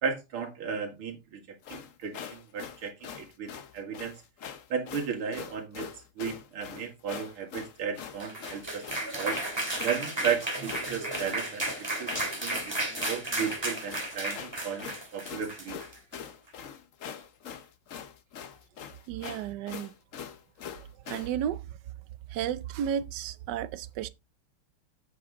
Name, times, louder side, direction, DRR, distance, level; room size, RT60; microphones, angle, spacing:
voice 1, 0.0-1.4 1.7-4.2 4.7-5.9 6.2-8.8 9.1-9.4 9.8-11.7 12.0-15.8, right 7 dB, 85° right, 2.8 m, -34 dB
sound 1, 1.6-21.3, left 8 dB, 55° left, 0.9 m, -43 dB
sound 2, 8.0-16.3, right 1 dB, 10° right, 2.4 m, -34 dB
voice 2, 19.1-19.9 21.1-21.6 22.3-24.1, right 9 dB, 65° right, 1.1 m, -33 dB
7.9 x 7.7 x 3.8 m
omnidirectional pair, 2.3 m